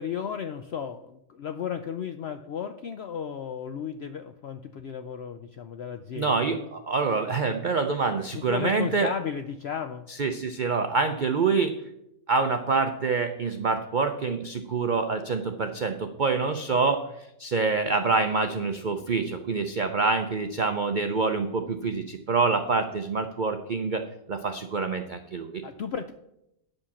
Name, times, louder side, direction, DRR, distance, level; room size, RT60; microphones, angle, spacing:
voice 1, 0.0-6.5 8.3-10.1 25.6-26.1, left 7 dB, 75° left, 8 dB, 0.6 m, -34 dB
voice 2, 6.1-9.1 10.2-11.8 12.3-17.0 17.4-24.0 24.3-25.6, right 4 dB, 65° right, 6 dB, 0.4 m, -26 dB
9.5 x 5.2 x 7.0 m, 0.83 s
omnidirectional pair, 1.6 m